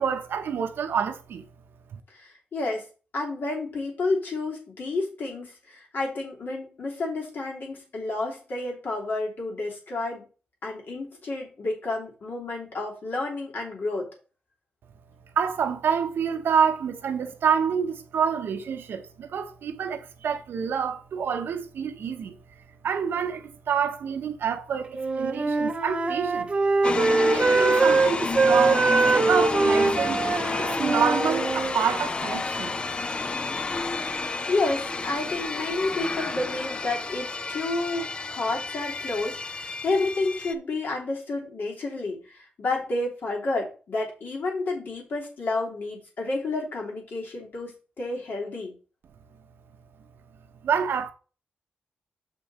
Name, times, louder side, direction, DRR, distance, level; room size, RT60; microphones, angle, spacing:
voice 1, 0.0-1.5 1.9-2.0 15.4-22.4 22.8-26.5 27.2-30.3 30.5-32.8 50.6-51.1, right 7 dB, 85° right, 0.9 m, -27 dB
voice 2, 2.1-2.9 3.1-10.2 10.6-14.1 34.5-48.7, left 2 dB, 65° left, 3.1 m, -30 dB
Wind instrument woodwind instrument, 24.9-31.8, right 3 dB, 35° right, 0.7 m, -23 dB
sound 1, 26.8-40.5, left 3 dB, 30° left, 0.5 m, -30 dB
6.9 x 5.2 x 4.3 m
wide cardioid pair, 130°, 4 cm